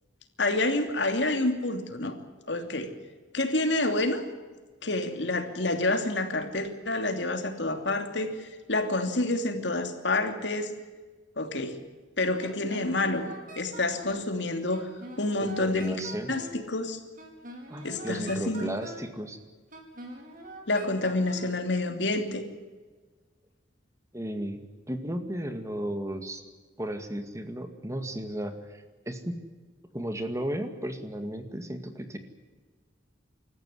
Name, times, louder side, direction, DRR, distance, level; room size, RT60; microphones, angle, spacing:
voice 1, 0.4-2.1 2.5-2.9 3.3-4.3 4.8-10.7 11.4-11.8 12.2-13.3 13.5-14.9 15.2-16.0 16.3-17.0 17.8-18.7 20.7-22.5, left 2 dB, 70° left, 6 dB, 2.9 m, -28 dB
Wind instrument woodwind instrument, 12.4-14.3 14.7-16.6 17.2-19.1 19.7-21.6, right 1 dB, 50° right, 5.3 m, -44 dB
voice 2, 15.4-16.3 17.7-19.4 24.1-24.6 24.9-26.4 26.8-29.4 29.9-32.2, right 1 dB, 15° right, 7 dB, 2.0 m, -34 dB
26.5 x 14.5 x 9.9 m, 1.3 s
head